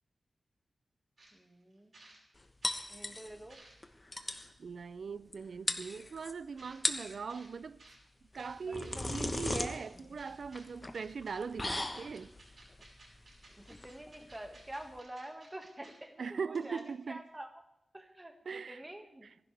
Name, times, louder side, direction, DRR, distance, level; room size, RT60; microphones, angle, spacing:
sound 1, 1.2-1.3 1.7-2.9 3.3-4.0 4.8-4.9 6.6-6.8 7.3-7.5 7.8-8.0 8.4-9.0 9.3-9.8 10.2-10.6 10.9-11.4 11.6-15.9 16.2-16.3 16.5-17.0, right 2 dB, 55° right, 5.8 m, -57 dB
voice 1, 1.3-2.0 2.9-3.6 8.7-9.1 13.6-17.5 17.9-19.3, right 1 dB, 15° right, 2.0 m, -47 dB
sound 2, 2.6-3.5 3.8-3.9 4.1-4.5 5.3-5.4 5.7-6.3 6.7-7.2 8.3-15.0, left 2 dB, 20° left, 1.2 m, -38 dB
voice 2, 4.6-7.8 8.3-12.3 16.2-17.2 18.5-18.8 19.2-19.3, right 5 dB, 70° right, 0.5 m, -40 dB
27.0 x 11.0 x 3.5 m
wide cardioid pair, 95°, 0 cm